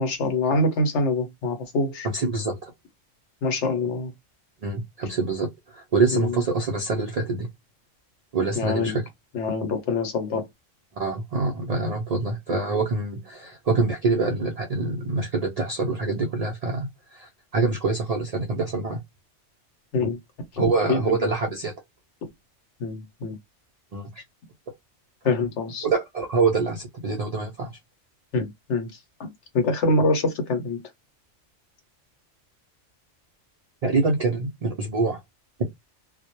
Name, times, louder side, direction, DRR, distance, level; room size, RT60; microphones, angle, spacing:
voice 1, 0.0-2.1 3.4-4.1 6.1-6.4 8.5-9.0 9.3-10.5 19.9-20.2 20.5-21.3 22.8-23.4 25.2-25.9 28.3-28.9 29.2-30.8, left 2 dB, 75° left, 1.0 m, -25 dB
voice 2, 2.1-2.6 4.6-7.5 8.3-9.0 11.0-19.0 20.6-21.7 23.9-24.2 25.8-27.7 33.8-35.2, right 3 dB, 85° right, 0.3 m, -25 dB
2.1 x 2.0 x 2.9 m
omnidirectional pair, 1.2 m